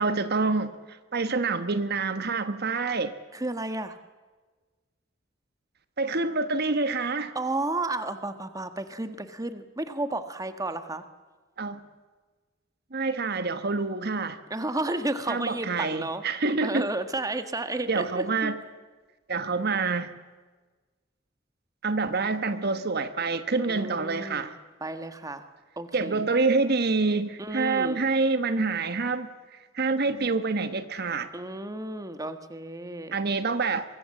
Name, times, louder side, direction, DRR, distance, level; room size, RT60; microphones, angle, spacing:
voice 1, 0.0-3.1 6.0-7.3 11.6-11.9 12.9-14.4 15.3-16.9 17.9-18.6 19.3-20.1 21.8-24.5 25.9-29.3 29.7-31.3 33.1-33.8, right 3 dB, 55° right, 11 dB, 1.2 m, -27 dB
voice 2, 3.3-4.0 7.3-11.0 14.5-16.2 16.6-18.5 23.7-24.5 24.8-25.4 25.8-26.3 27.4-28.0 31.3-33.2, right 2 dB, 20° right, 9 dB, 1.5 m, -32 dB
24.0 x 23.0 x 7.7 m, 1.3 s
head